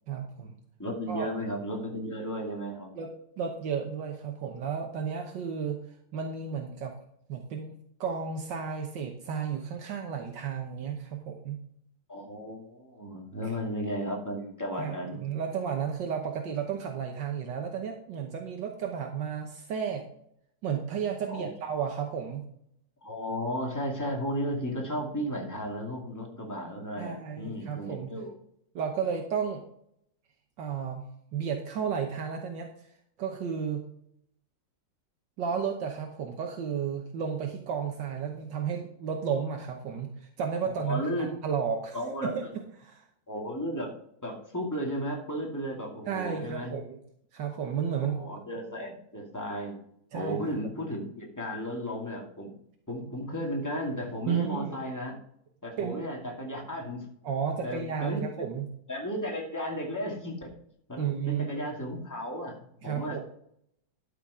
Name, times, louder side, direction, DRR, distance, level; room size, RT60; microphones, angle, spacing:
voice 1, 0.1-0.6 1.1-1.4 2.9-3.1 3.4-5.8 6.1-6.9 7.3-7.7 8.0-11.6 14.8-20.0 20.6-22.5 27.0-28.1 28.7-29.6 30.6-31.1 31.3-32.7 33.2-33.8 35.4-42.0 42.2-42.4 42.8-43.0 46.1-47.0 47.3-48.2 50.1-50.4 54.3-54.7 55.8-56.0 57.2-58.7 61.0-61.7 62.8-63.2, right 7 dB, 75° right, 3 dB, 1.7 m, -33 dB
voice 2, 0.8-2.9 12.1-15.2 21.3-21.5 23.0-28.3 40.6-41.3 41.9-42.5 43.3-43.9 44.2-46.7 48.0-49.8 50.1-52.5 52.9-55.2 55.6-57.1 57.6-58.3 58.9-60.5 60.9-63.2, equal, 10° left, -1 dB, 2.3 m, -34 dB
12.0 x 5.7 x 4.9 m, 0.70 s
omnidirectional pair, 2.0 m